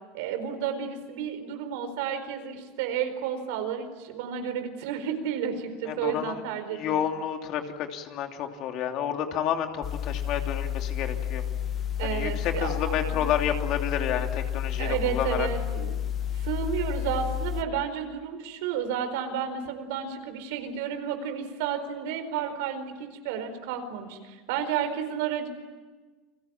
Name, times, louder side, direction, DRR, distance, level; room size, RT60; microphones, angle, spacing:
voice 1, 0.1-7.1 12.0-13.2 14.8-16.0 16.3-25.5, right 8 dB, 80° right, 7 dB, 4.5 m, -32 dB
voice 2, 5.9-6.4 6.7-11.4 12.0-15.5, left 9 dB, 50° left, 4 dB, 2.9 m, -30 dB
sound 1, 9.8-17.6, left 9 dB, 30° left, 1.0 m, -31 dB
29.5 x 21.5 x 8.9 m, 1.3 s
supercardioid pair, 140°, 0 cm